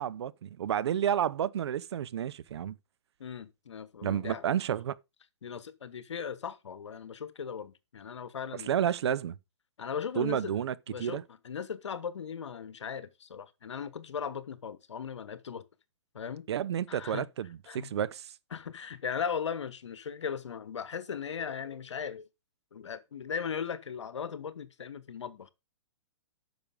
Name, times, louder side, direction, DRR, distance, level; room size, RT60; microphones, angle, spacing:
voice 1, 0.0-2.8 4.0-5.0 8.7-9.4 10.2-11.2 16.5-18.3, right 9 dB, 65° right, 0.6 m, -31 dB
voice 2, 3.2-4.4 5.4-8.7 9.8-10.5 10.9-11.2 11.4-15.6 16.1-16.5 16.9-17.3 17.7-18.0 18.5-22.3 22.7-25.5, left 7 dB, 80° left, 1.2 m, -38 dB
9.2 x 6.6 x 5.2 m
hypercardioid pair, 130°, 15 cm